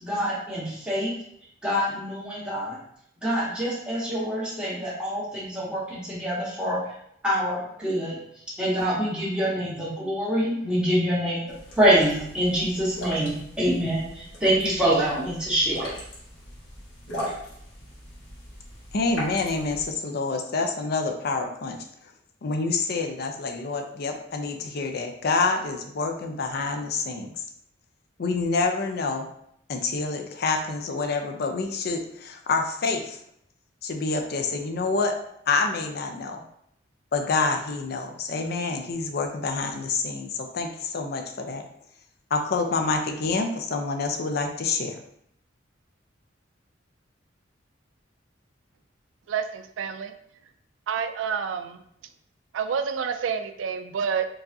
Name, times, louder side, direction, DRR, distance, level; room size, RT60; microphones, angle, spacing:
voice 1, 0.0-1.1 1.6-2.8 3.2-6.8 7.2-8.2 8.6-15.9, equal, 5° right, -8 dB, 1.3 m, -25 dB
sound 1, 11.5-19.9, equal, 80° left, 1.2 m, -39 dB
voice 2, 18.9-21.8 22.4-27.3 28.2-29.3 29.7-33.2 33.8-35.1 35.5-36.4 37.1-41.7 42.3-45.0, left 3 dB, 55° left, 4 dB, 0.5 m, -27 dB
voice 3, 49.3-50.1 50.9-51.8 52.5-54.3, right 6 dB, 80° right, 8 dB, 0.3 m, -28 dB
4.6 x 2.4 x 2.6 m, 0.72 s
head